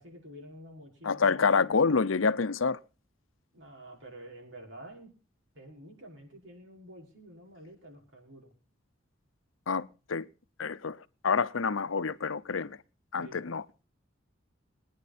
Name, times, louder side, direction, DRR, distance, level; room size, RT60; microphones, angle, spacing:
voice 1, 0.0-1.6 3.5-5.1 5.5-8.5 13.2-13.5, right 1 dB, 65° right, 5.5 m, -49 dB
voice 2, 1.0-2.8 9.7-10.3 10.6-12.8 13.1-13.6, left 5 dB, 90° left, 0.7 m, -27 dB
21.5 x 9.6 x 4.2 m
head